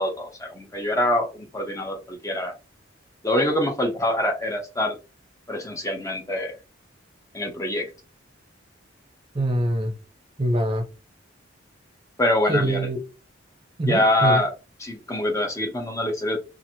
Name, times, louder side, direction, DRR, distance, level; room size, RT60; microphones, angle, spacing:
voice 1, 0.0-2.5 3.2-5.0 5.5-6.6 7.3-7.9 12.2-12.9 13.8-14.5 14.8-16.4, left 1 dB, 15° left, 0.6 m, -24 dB
voice 2, 9.3-9.9 10.4-10.8 12.5-13.0 13.8-14.4, right 1 dB, 30° right, 0.6 m, -23 dB
2.9 x 2.5 x 2.7 m
head